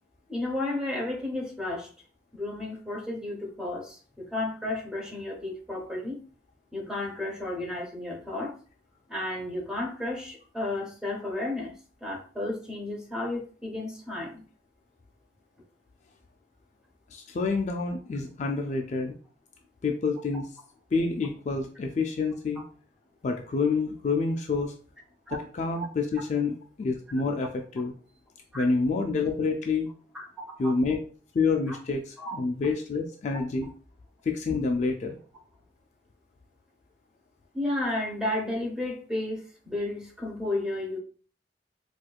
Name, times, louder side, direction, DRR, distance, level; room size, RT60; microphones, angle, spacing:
voice 1, 0.3-1.9 2.3-6.2 6.7-8.5 9.1-11.7 12.0-14.4 25.3-25.4 25.8-25.9 28.5-28.6 30.1-30.4 31.7-31.8 32.2-32.3 33.3-33.4 37.5-41.0, left 2 dB, 5° right, -1 dB, 0.8 m, -32 dB
voice 2, 17.1-19.1 19.8-20.5 20.9-22.6 23.2-24.7 25.3-27.9 28.5-29.9 30.6-31.0 31.3-33.7 34.3-35.2, left 4 dB, 40° left, 4 dB, 0.3 m, -28 dB
4.3 x 2.4 x 2.3 m, 0.40 s
head